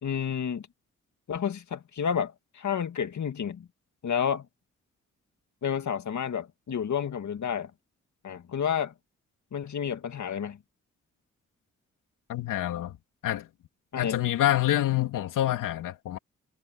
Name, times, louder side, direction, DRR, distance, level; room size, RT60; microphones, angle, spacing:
voice 1, 0.0-0.7 1.3-3.7 4.0-4.5 5.6-7.7 8.2-8.9 9.5-10.6 13.9-14.2, left 8 dB, 65° left, 2.1 m, -30 dB
voice 2, 12.3-13.0 13.2-13.5 14.0-16.2, left 13 dB, 85° left, 2.7 m, -27 dB
supercardioid pair, 40°, 31 cm